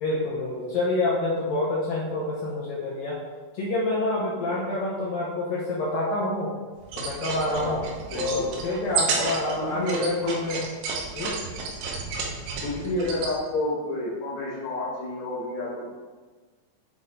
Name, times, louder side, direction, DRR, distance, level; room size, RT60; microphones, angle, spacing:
voice 1, 0.0-3.2 3.5-6.5 7.0-7.8 8.1-10.7 11.1-11.4, left 2 dB, 75° left, -5 dB, 2.1 m, -27 dB
voice 2, 4.4-4.8 7.5-7.8 8.1-8.5 9.2-10.3 12.6-15.9, left 2 dB, 55° left, -11 dB, 3.3 m, -30 dB
sound 1, 6.8-13.3, right 4 dB, 75° right, 3.0 m, -31 dB
7.9 x 4.0 x 3.8 m, 1.4 s
omnidirectional pair, 5.2 m